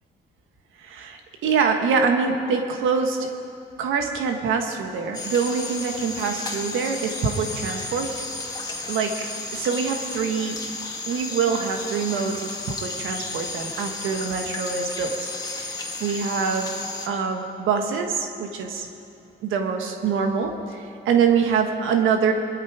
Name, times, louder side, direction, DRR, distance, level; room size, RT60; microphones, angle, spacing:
voice 1, 0.8-3.3 3.8-8.2 8.9-10.6 11.0-15.1 15.5-18.9 19.4-22.3, right 6 dB, 85° right, 4 dB, 1.4 m, -25 dB
sound 1, 5.1-17.1, left 3 dB, 20° left, 2.1 m, -33 dB
23.0 x 12.0 x 5.0 m, 2.7 s
cardioid pair, 90°, 20 cm